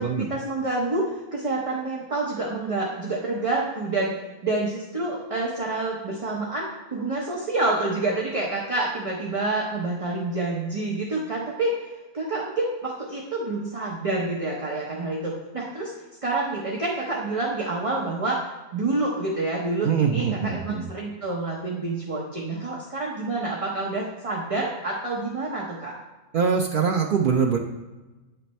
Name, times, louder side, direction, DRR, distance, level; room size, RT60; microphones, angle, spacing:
voice 1, 0.3-4.1 4.4-11.7 12.1-15.9 16.2-18.4 18.7-25.9, right 2 dB, 30° right, -3 dB, 0.8 m, -28 dB
voice 2, 19.8-20.8 26.3-27.6, right 6 dB, 80° right, 2 dB, 0.4 m, -23 dB
9.0 x 3.3 x 4.1 m, 1.2 s
omnidirectional pair, 1.4 m